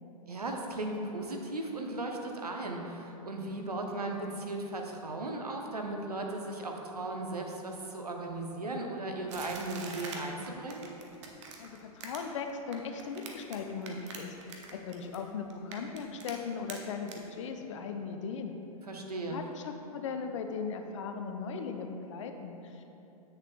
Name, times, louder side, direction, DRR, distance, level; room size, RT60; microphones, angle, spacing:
voice 1, 0.3-10.9 18.9-19.4, right 2 dB, 80° right, 2 dB, 0.8 m, -37 dB
sound 1, 9.3-13.6 13.8-15.2 15.5-16.3 16.7-16.8 17.1-17.2, right 5 dB, 50° right, 0.8 m, -44 dB
voice 2, 11.6-18.6 19.3-22.8, left 5 dB, 55° left, 5 dB, 0.6 m, -38 dB
7.9 x 6.5 x 2.3 m, 2.8 s
figure-of-eight pair, 100°, 19 cm